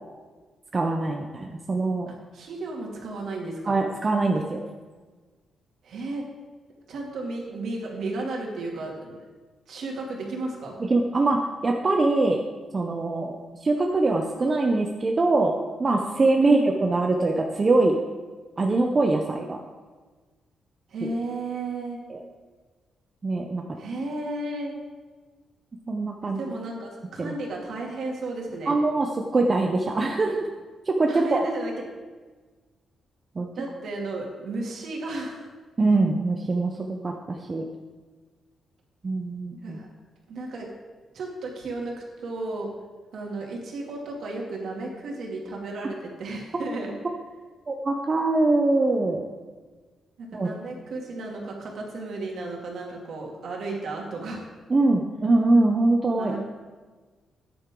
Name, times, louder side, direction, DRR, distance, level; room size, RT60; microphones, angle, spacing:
voice 1, 0.7-2.1 3.7-4.7 10.9-12.4 12.7-15.5 15.8-18.0 18.6-19.6 21.0-21.1 22.1-22.2 23.2-23.6 25.9-26.4 27.2-27.3 28.7-30.5 30.9-31.4 33.4-33.5 35.8-37.6 39.0-39.8 47.7-49.2 50.3-50.5 54.7-56.4, right 2 dB, 25° right, 2 dB, 0.7 m, -23 dB
voice 2, 2.1-3.7 5.8-6.3 6.9-9.2 9.7-10.7 16.4-16.7 20.9-22.0 23.8-24.8 26.2-28.7 31.1-31.7 33.6-35.5 39.6-39.9 40.3-40.7 41.1-42.7 43.1-46.9 50.2-54.4 56.2-56.4, right 2 dB, 65° right, -1 dB, 2.5 m, -33 dB
14.0 x 9.9 x 3.8 m, 1.4 s
cardioid pair, 150°, 0 cm